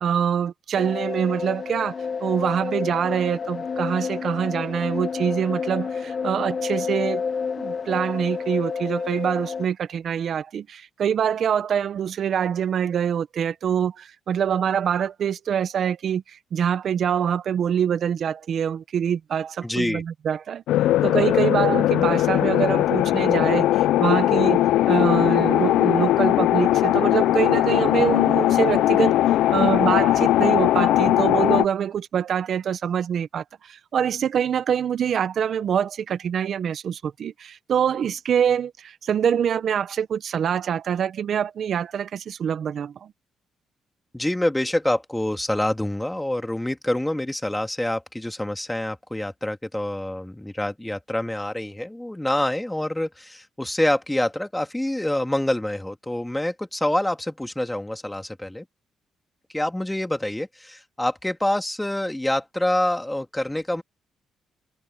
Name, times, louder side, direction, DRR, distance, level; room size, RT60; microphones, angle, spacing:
voice 1, 0.0-2.0 2.2-7.2 7.6-20.6 21.0-24.6 24.9-43.1, right 8 dB, 60° right, 0.9 m, -25 dB
sound 1, 0.8-9.6, left 5 dB, 40° left, 0.7 m, -29 dB
voice 2, 19.6-20.0 44.1-58.6 59.5-63.8, left 1 dB, 10° left, 2.4 m, -26 dB
sound 2, 20.7-31.6, left 14 dB, 85° left, 0.4 m, -19 dB
cardioid pair, 90°, 0 cm